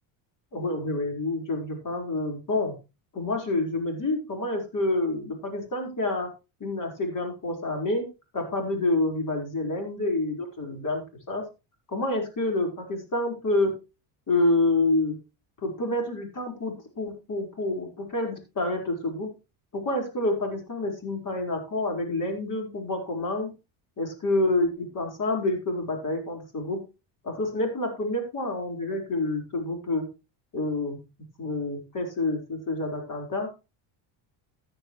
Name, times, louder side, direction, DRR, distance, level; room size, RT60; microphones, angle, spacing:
voice 1, 0.5-2.8 3.1-6.3 6.6-8.1 8.3-11.5 11.9-13.7 14.3-15.2 15.6-19.3 19.7-23.5 24.0-26.8 27.2-30.1 30.5-31.1 31.4-33.5, left 2 dB, 40° left, 3 dB, 4.4 m, -28 dB
14.0 x 9.5 x 3.1 m, 0.29 s
cardioid pair, 115°, 48 cm